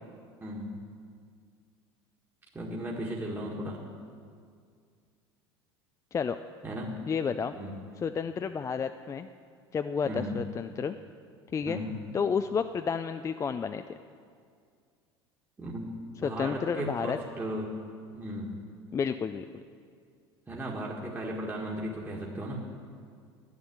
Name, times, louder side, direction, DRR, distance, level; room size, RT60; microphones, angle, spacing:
voice 1, 0.4-0.8 2.5-3.8 6.6-6.9 7.5-7.8 10.0-10.4 11.7-12.0 15.6-15.9 16.2-17.7 18.1-18.5 20.5-22.6, right 1 dB, 15° right, -3 dB, 1.7 m, -36 dB
voice 2, 7.1-7.5 8.0-9.3 9.7-11.0 11.5-11.8 12.1-13.8 16.2-17.2 18.9-19.6, left 6 dB, 25° left, 9 dB, 0.4 m, -31 dB
10.5 x 7.3 x 9.5 m, 2.2 s
hypercardioid pair, 75°, 14 cm